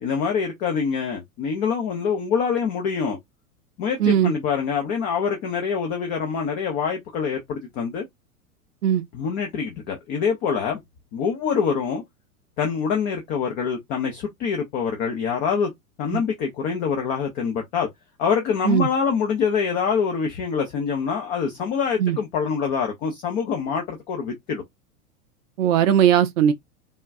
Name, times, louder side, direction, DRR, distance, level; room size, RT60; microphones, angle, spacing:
voice 1, 0.0-3.2 3.8-8.0 9.1-10.8 11.1-12.0 12.6-15.7 16.0-17.9 18.2-24.6, left 6 dB, 20° left, 0.4 m, -25 dB
voice 2, 4.0-4.3 8.8-9.0 16.1-16.2 18.6-18.9 22.0-22.2 25.6-26.5, right 9 dB, 60° right, 0.5 m, -18 dB
3.4 x 2.2 x 2.5 m
figure-of-eight pair, 90°, 45 cm